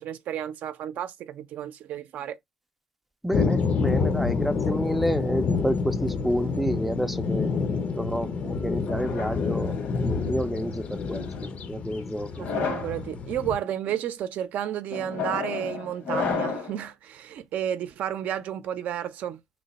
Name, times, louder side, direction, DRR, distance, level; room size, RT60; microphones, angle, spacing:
voice 1, 0.0-2.4 12.3-19.4, right 10 dB, 70° right, 0.5 m, -32 dB
voice 2, 3.2-7.5 8.0-9.8 10.0-12.5, equal, 5° right, 0.4 m, -29 dB
sound 1, 3.3-13.6, left 5 dB, 50° left, 0.5 m, -28 dB
sound 2, 8.9-10.3 11.1-11.5 12.3-13.0 13.6-13.9 14.9-16.8, left 5 dB, 80° left, 1.2 m, -32 dB
3.0 x 2.1 x 4.0 m
cardioid pair, 80°, 3 cm